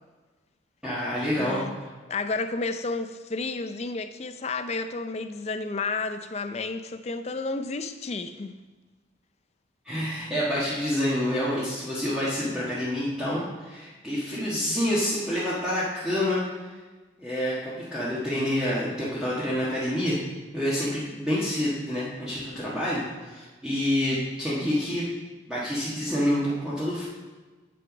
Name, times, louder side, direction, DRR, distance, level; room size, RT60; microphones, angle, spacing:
voice 1, 0.8-1.6 9.8-16.7 17.2-20.2 20.5-25.0 25.5-27.1, left 1 dB, 5° right, -10 dB, 1.4 m, -28 dB
voice 2, 1.4-1.8 2.1-8.6, left 3 dB, 35° left, 9 dB, 0.5 m, -31 dB
7.9 x 6.6 x 5.1 m, 1.3 s
head